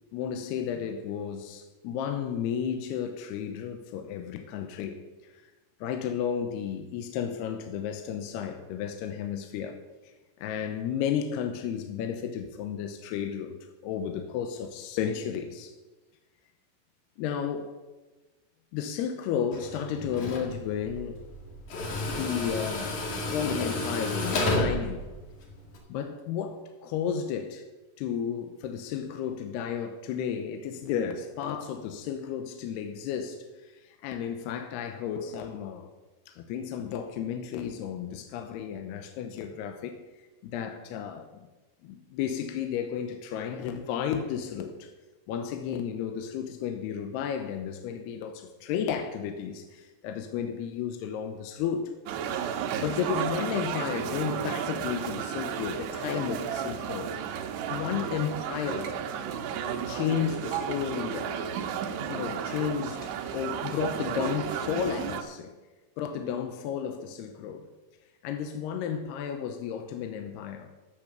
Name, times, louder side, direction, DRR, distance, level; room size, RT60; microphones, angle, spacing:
voice 1, 0.1-5.0 5.2-5.3 5.8-9.8 10.4-13.6 13.8-15.8 17.2-17.8 18.7-21.3 22.1-25.1 25.9-27.6 28.0-33.4 33.8-35.9 36.3-40.0 40.4-41.5 41.8-44.9 45.3-51.9 52.8-57.1 57.7-59.0 59.9-61.6 62.1-65.5 66.0-67.7 68.2-70.7, left 8 dB, 80° left, 2.8 m, -33 dB
Tools, 19.5-25.8, left 1 dB, 55° left, 3.2 m, -32 dB
sound 1, 52.1-65.2, right 8 dB, 80° right, 3.0 m, -33 dB
15.0 x 7.0 x 6.9 m
omnidirectional pair, 4.9 m